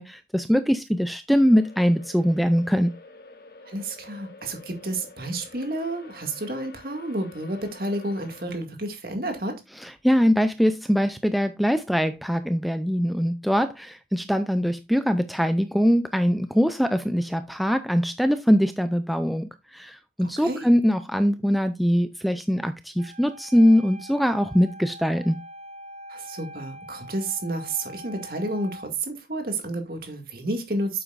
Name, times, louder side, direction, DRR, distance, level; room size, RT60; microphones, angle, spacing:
voice 1, 0.0-2.9 9.8-25.4, equal, ahead, 0.4 m, -22 dB
sound 1, 1.4-8.5, left 3 dB, 55° left, 1.4 m, -48 dB
voice 2, 3.6-9.6 20.2-20.7 26.1-31.0, right 2 dB, 55° right, 2.1 m, -31 dB
Wind instrument woodwind instrument, 23.0-28.9, equal, 35° right, 0.8 m, -43 dB
9.0 x 7.8 x 2.5 m
head